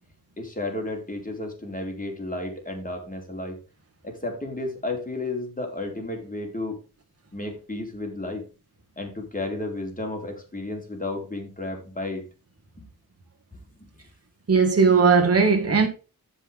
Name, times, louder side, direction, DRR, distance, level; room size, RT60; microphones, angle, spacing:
voice 1, 0.4-3.6 4.0-6.8 7.3-8.4 9.0-12.2 12.8-12.9 13.8-13.9, left 2 dB, 20° left, 4.1 m, -32 dB
voice 2, 14.5-15.9, right 5 dB, 40° right, 1.8 m, -18 dB
13.5 x 5.7 x 3.5 m
wide cardioid pair, 85°, 37 cm